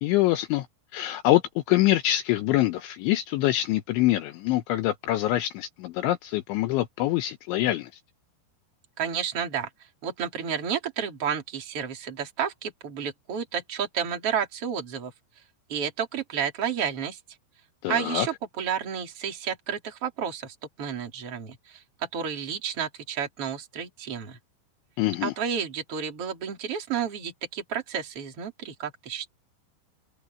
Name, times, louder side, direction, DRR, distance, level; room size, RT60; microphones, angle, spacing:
voice 1, 0.0-0.7 0.9-1.4 1.7-7.9 17.8-18.3 25.0-25.3, left 15 dB, 75° left, 3.1 m, -24 dB
voice 2, 9.0-9.7 10.0-15.1 15.7-17.2 17.9-24.4 25.2-29.3, right 7 dB, 30° right, 4.1 m, -31 dB
open air
omnidirectional pair, 5.8 m